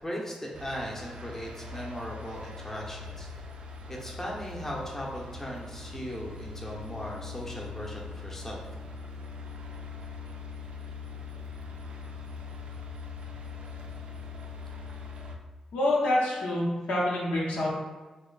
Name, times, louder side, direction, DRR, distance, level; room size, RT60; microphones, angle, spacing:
voice 1, 0.0-3.3 3.9-8.6, equal, 15° left, -3 dB, 0.7 m, -38 dB
sound 1, 0.5-15.4, left 4 dB, 60° right, 0.4 m, -41 dB
voice 2, 15.7-17.7, left 1 dB, 90° left, -5 dB, 0.8 m, -27 dB
3.0 x 2.2 x 3.8 m, 1.2 s
cardioid pair, 60°, 2 cm